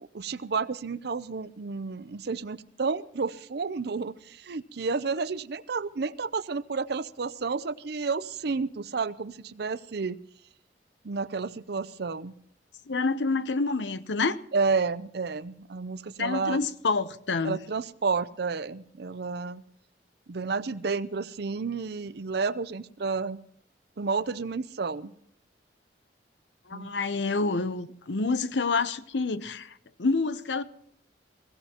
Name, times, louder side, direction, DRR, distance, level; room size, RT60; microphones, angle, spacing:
voice 1, 0.0-10.2 11.0-12.3 14.5-16.6 17.4-19.6 20.3-23.4 24.0-25.1 26.7-26.9, right 4 dB, 65° right, 0.6 m, -31 dB
voice 2, 12.9-14.4 16.2-17.6 26.7-30.6, left 3 dB, 90° left, 0.8 m, -28 dB
22.0 x 16.0 x 3.0 m
head